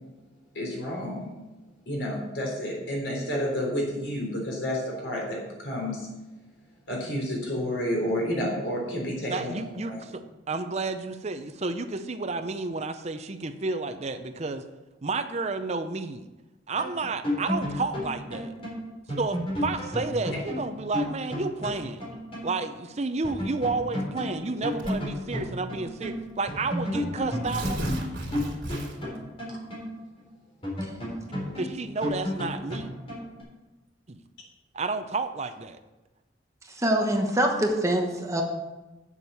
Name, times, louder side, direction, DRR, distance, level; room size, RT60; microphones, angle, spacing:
voice 1, 0.6-1.3 1.9-6.1 6.9-10.0, equal, 75° left, -1 dB, 3.5 m, -30 dB
voice 2, 9.3-14.6 15.0-16.3 16.7-18.5 19.2-22.0 22.4-28.1 31.6-32.9 34.1-34.2 34.7-35.8, right 3 dB, 35° right, 9 dB, 0.6 m, -31 dB
sound 1, 16.8-22.5 22.8-22.9 23.2-26.2 26.5-30.2 30.6-33.4, left 1 dB, 30° left, 3.8 m, -32 dB
Tearing, 24.8-25.2 26.1-26.2 26.5-26.6 27.2-29.2, right 1 dB, 75° right, 2.8 m, -34 dB
voice 3, 36.7-38.4, right 1 dB, 15° right, 2 dB, 1.1 m, -24 dB
8.2 x 7.3 x 6.9 m, 1.1 s
head